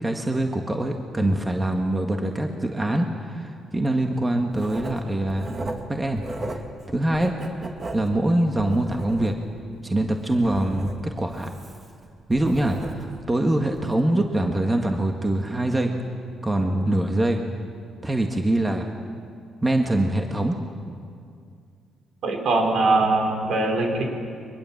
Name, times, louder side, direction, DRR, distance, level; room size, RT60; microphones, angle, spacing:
voice 1, 0.0-6.6 6.9-9.3 9.8-10.9 11.2-11.6 12.3-15.9 16.4-17.4 18.0-18.9 19.6-20.6, right 1 dB, 20° right, 3 dB, 1.8 m, -24 dB
Writing, 4.5-6.8 7.1-9.6 10.0-13.3 13.7-13.9, right 2 dB, 35° right, 2.4 m, -37 dB
voice 2, 22.2-24.0, right 2 dB, 70° right, 2 dB, 4.8 m, -21 dB
23.5 x 21.0 x 7.4 m, 2.3 s
cardioid pair, 90°, 0 cm